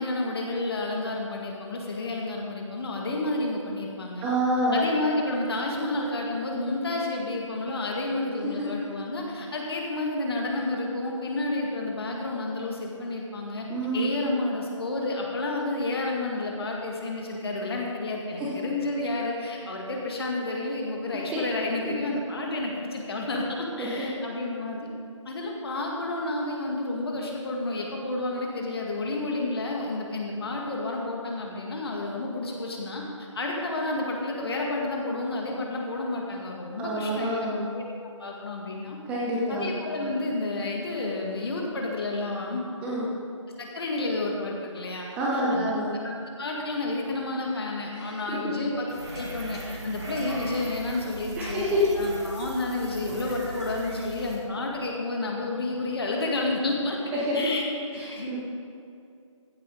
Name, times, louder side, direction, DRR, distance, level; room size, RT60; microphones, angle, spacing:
voice 1, 0.0-4.3 4.7-13.7 13.9-24.9 25.3-37.4 37.7-37.8 38.2-39.0 39.5-42.6 43.6-45.1 45.3-45.7 46.0-46.1 46.4-51.6 52.0-57.6 58.1-58.4, left 2 dB, 50° left, -1 dB, 2.1 m, -30 dB
voice 2, 4.2-4.9 13.7-14.1 18.4-18.5 21.3-21.4 21.8-21.9 23.8-24.1 36.8-37.6 39.1-39.7 42.8-43.1 45.2-45.9 47.9-48.0 48.3-48.5 51.4-51.9 57.3-57.4 57.9-58.4, equal, 5° right, -6 dB, 0.9 m, -27 dB
sound 1, 48.9-54.4, right 1 dB, 55° right, 3.0 m, -38 dB
16.0 x 8.2 x 4.0 m, 2.5 s
figure-of-eight pair, 160°, 17 cm